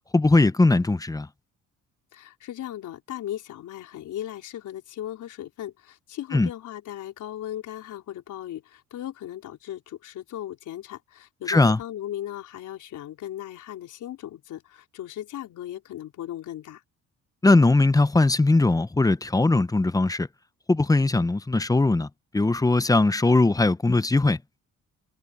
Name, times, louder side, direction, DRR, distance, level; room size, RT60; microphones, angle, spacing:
voice 1, 0.1-1.3 6.3-6.5 11.5-11.8 17.4-20.3 20.7-22.1 22.3-24.4, left 2 dB, 10° left, 0.7 m, -20 dB
voice 2, 2.1-16.8, left 12 dB, 80° left, 4.5 m, -37 dB
cardioid pair, 90°, 30 cm